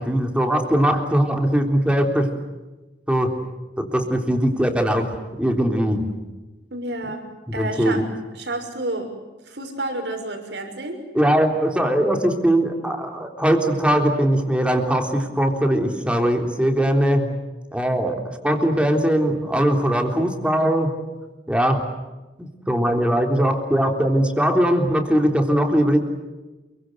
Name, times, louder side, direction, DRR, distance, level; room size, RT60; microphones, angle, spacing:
voice 1, 0.0-2.3 3.1-3.4 3.8-5.1 5.4-6.0 7.5-8.0 11.1-17.3 17.7-20.9 21.5-21.8 22.4-26.0, right 1 dB, 5° right, 4 dB, 3.6 m, -20 dB
voice 2, 6.7-7.3 7.5-8.0 8.3-9.1 9.5-11.0, right 2 dB, 70° right, 5 dB, 6.3 m, -29 dB
28.5 x 24.0 x 8.0 m, 1.1 s
head